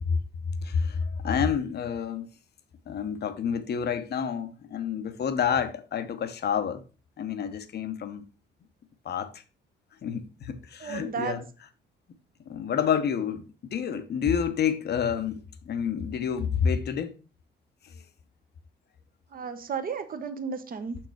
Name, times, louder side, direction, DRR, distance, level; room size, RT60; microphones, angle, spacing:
voice 1, 0.6-2.3 2.9-6.8 7.2-8.2 9.0-9.3 10.0-11.4 12.5-13.4 13.7-15.4 15.7-17.1, left 7 dB, 55° left, 0.9 m, -28 dB
voice 2, 10.8-11.4 19.3-21.0, right 6 dB, 45° right, 1.0 m, -33 dB
6.6 x 4.6 x 4.6 m
cardioid pair, 90°, 20 cm